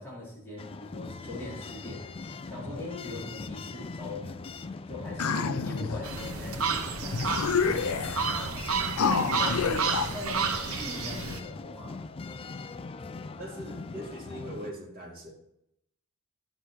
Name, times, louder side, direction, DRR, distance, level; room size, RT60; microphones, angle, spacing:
voice 1, 0.0-2.0 2.5-4.4 4.9-7.7 8.3-12.0, left 2 dB, 10° left, -8 dB, 4.3 m, -40 dB
sound 1, 0.6-14.7, left 3 dB, 25° left, 0.4 m, -41 dB
sound 2, 5.2-6.0 6.7-6.8 7.1-8.3 9.0-10.1, left 5 dB, 85° left, 0.6 m, -28 dB
sound 3, 6.0-11.4, right 5 dB, 85° right, 1.0 m, -31 dB
voice 2, 13.4-15.3, equal, 45° right, -3 dB, 2.5 m, -41 dB
10.5 x 6.7 x 4.5 m, 0.81 s
head